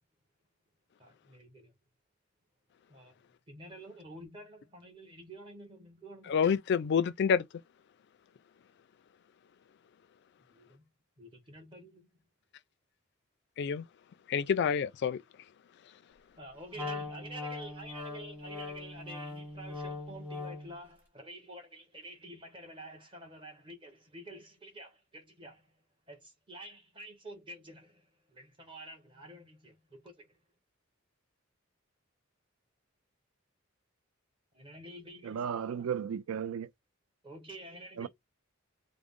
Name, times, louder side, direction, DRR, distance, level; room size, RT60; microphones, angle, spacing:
voice 1, 1.0-1.7 2.9-3.1 3.5-6.3 10.5-10.8 11.2-12.1 16.4-25.7 26.1-30.3 34.5-35.9 37.2-38.1, right 1 dB, 25° right, 1.0 m, -49 dB
voice 2, 6.3-7.4 13.6-13.8 14.3-15.2, left 6 dB, 55° left, 0.3 m, -28 dB
Wind instrument woodwind instrument, 16.7-20.8, left 3 dB, 10° right, 1.1 m, -41 dB
voice 3, 35.2-36.7 38.0-38.1, right 7 dB, 85° right, 0.4 m, -34 dB
3.6 x 2.0 x 3.6 m
head